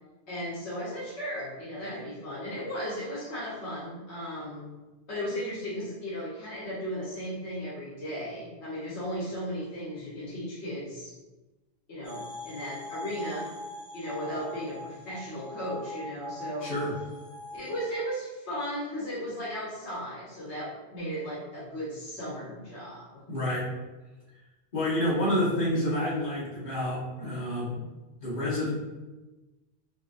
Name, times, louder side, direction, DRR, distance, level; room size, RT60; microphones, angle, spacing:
voice 1, 0.3-4.7 5.1-11.1 11.9-13.5 13.9-16.7 17.5-23.2, equal, 75° left, -7 dB, 1.2 m, -36 dB
sound 1, 12.0-18.1, left 1 dB, 30° left, 0.5 m, -42 dB
voice 2, 16.6-16.9 23.3-23.7 24.7-27.8 28.2-28.7, left 1 dB, 50° left, -9 dB, 1.4 m, -28 dB
4.1 x 2.5 x 2.4 m, 1.1 s
omnidirectional pair, 1.2 m